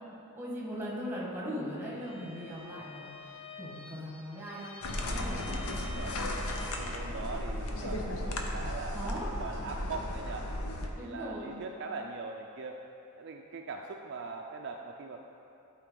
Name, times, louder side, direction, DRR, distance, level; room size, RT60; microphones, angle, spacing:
voice 1, 0.3-5.4 5.7-5.9 8.9-9.3 10.9-11.6, equal, 10° right, -5 dB, 1.4 m, -40 dB
Bowed string instrument, 1.9-7.2, left 4 dB, 25° left, 0.4 m, -49 dB
sound 1, 4.8-10.9, left 1 dB, 80° left, 0.7 m, -35 dB
voice 2, 5.0-5.4 5.8-10.5 11.0-12.8 13.2-15.2, right 4 dB, 50° right, 1 dB, 0.4 m, -42 dB
12.0 x 4.4 x 3.8 m, 2.8 s
head